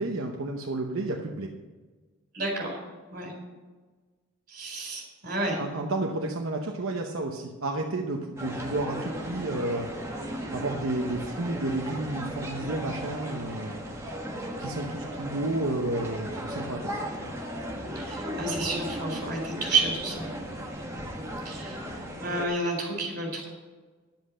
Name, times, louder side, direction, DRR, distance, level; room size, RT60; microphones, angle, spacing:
voice 1, 0.0-1.5 5.6-9.9 10.5-13.8 14.6-16.9, right 2 dB, 75° right, 1 dB, 0.9 m, -31 dB
voice 2, 2.3-2.8 3.1-3.3 4.5-5.6 17.9-20.3 21.4-21.8 22.2-23.5, right 3 dB, 45° right, -1 dB, 4.4 m, -30 dB
sound 1, 8.4-22.5, equal, 15° right, 1.4 m, -36 dB
10.5 x 7.9 x 6.3 m, 1.3 s
head